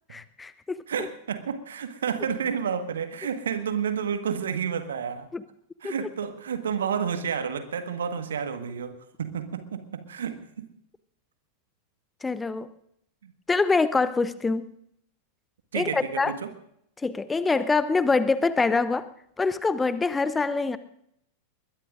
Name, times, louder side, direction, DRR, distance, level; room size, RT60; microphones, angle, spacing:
voice 1, 0.1-0.8 5.3-5.4 5.8-5.9 12.2-12.7 13.5-14.7 15.7-16.3 17.0-19.1 19.4-20.8, left 4 dB, 10° left, 15 dB, 0.7 m, -25 dB
voice 2, 0.9-5.3 5.8-10.7 13.2-13.3 15.7-16.5, right 7 dB, 65° right, 9 dB, 1.6 m, -30 dB
21.5 x 20.5 x 2.6 m, 0.74 s
figure-of-eight pair, 90°, 0 cm